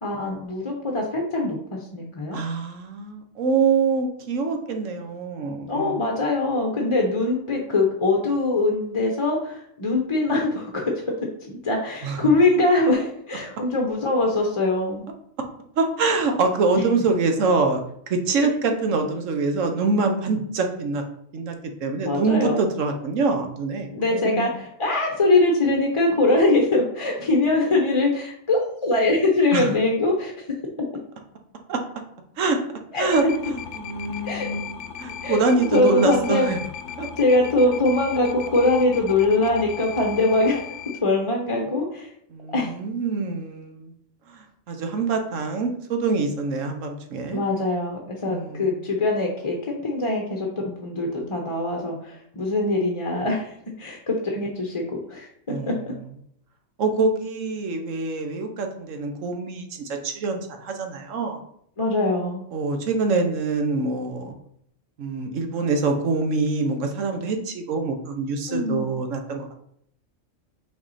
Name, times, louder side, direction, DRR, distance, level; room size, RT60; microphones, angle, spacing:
voice 1, 0.0-2.4 5.7-10.8 11.5-15.0 22.0-22.6 23.9-30.4 32.9-33.1 34.2-34.5 35.2-36.5 37.2-40.6 41.0-42.1 42.5-42.7 47.3-55.3 55.7-55.8 61.8-62.4 68.5-68.9, left 2 dB, 30° left, 0 dB, 0.8 m, -22 dB
voice 2, 2.3-6.0 12.0-12.2 15.8-17.8 18.1-21.0 21.3-24.5 29.5-29.7 31.7-31.8 32.4-32.6 32.9-36.6 37.0-37.1 42.3-43.9 44.3-47.4 48.3-48.8 55.5-55.8 56.8-61.4 62.5-64.3 65.0-69.5, right 3 dB, 75° right, 5 dB, 1.2 m, -25 dB
sound 1, 33.1-41.0, left 7 dB, 70° left, 0.9 m, -36 dB
5.8 x 4.0 x 4.1 m, 0.71 s
omnidirectional pair, 1.3 m